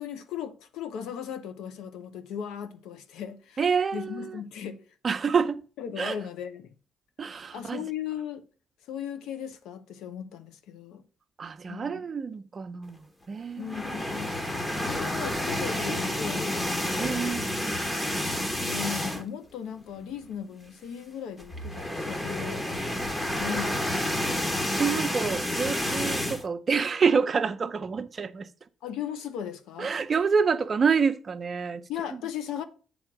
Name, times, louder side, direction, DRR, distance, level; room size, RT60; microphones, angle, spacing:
voice 1, 0.0-3.6 3.9-4.8 5.8-6.7 7.5-8.5 8.9-11.0 11.7-12.0 13.6-14.3 14.8-17.4 18.6-22.7 23.3-24.6 28.8-29.9 31.9-32.6, left 8 dB, 90° left, 0.8 m, -37 dB
voice 2, 3.6-4.4 5.0-5.6 6.0-6.2 7.2-7.8 11.4-13.0 13.3-14.0 17.0-17.7 24.8-28.5 29.8-31.8, right 5 dB, 40° right, 0.7 m, -27 dB
sound 1, 13.6-19.4 19.8-20.0 20.2-20.3 21.4-26.4, left 1 dB, 15° left, 1.3 m, -30 dB
7.9 x 3.6 x 6.0 m
cardioid pair, 90°, 0 cm